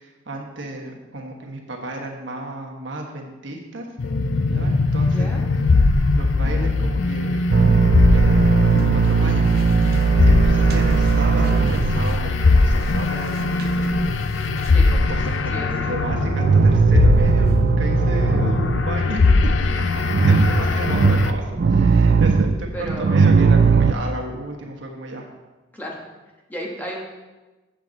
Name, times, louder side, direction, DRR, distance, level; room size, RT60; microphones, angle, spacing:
voice 1, 0.0-3.9 4.4-5.3 5.9-7.4 8.1-13.8 15.1-19.2 20.2-25.3, right 2 dB, 70° right, 0 dB, 1.3 m, -33 dB
sound 1, 4.0-21.3, left 3 dB, 70° left, 0.5 m, -20 dB
voice 2, 5.0-5.4 14.7-15.0 15.5-16.0 20.2-21.3 22.7-23.2 25.7-26.0 26.5-27.0, equal, 10° left, -2 dB, 1.3 m, -35 dB
sound 2, 7.5-14.2 14.4-15.5 15.8-19.0 19.3-23.9, right 5 dB, 50° right, 0.4 m, -18 dB
8.1 x 7.4 x 4.0 m, 1.2 s
head